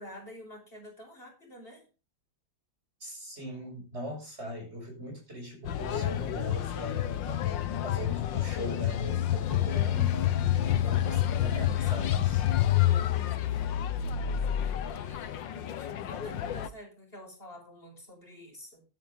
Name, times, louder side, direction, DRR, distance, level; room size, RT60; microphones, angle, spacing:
voice 1, 0.0-1.9 12.8-13.7 14.9-18.8, left 1 dB, 25° left, 1 dB, 6.0 m, -48 dB
voice 2, 3.0-7.4 7.8-12.4, left 1 dB, 30° right, 2 dB, 6.8 m, -39 dB
sound 1, 5.6-16.7, left 12 dB, 70° left, 1.6 m, -28 dB
13.5 x 11.5 x 3.7 m, 0.31 s
omnidirectional pair, 2.2 m